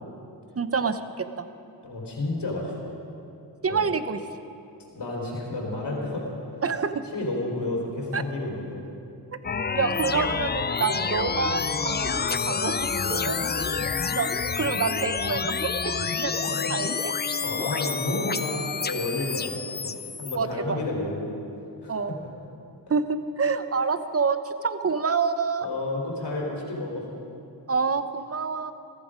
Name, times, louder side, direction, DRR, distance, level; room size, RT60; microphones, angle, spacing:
voice 1, 0.6-1.5 3.6-4.2 6.6-7.0 8.1-8.2 9.7-13.7 14.2-14.3 14.6-15.7 16.2-16.4 16.7-16.9 20.3-20.8 21.9-22.2 22.9-25.7 27.7-28.7, right 5 dB, 35° right, 11 dB, 0.8 m, -27 dB
voice 2, 1.8-2.9 3.7-3.8 4.9-6.4 7.1-8.9 16.4-16.7 17.4-21.3 21.8-22.3 25.6-27.1, left 2 dB, 65° left, -2 dB, 4.0 m, -31 dB
sound 1, 9.4-20.4, left 5 dB, 25° left, 0.5 m, -28 dB
14.5 x 14.5 x 5.1 m, 2.6 s
cardioid pair, 65°, 43 cm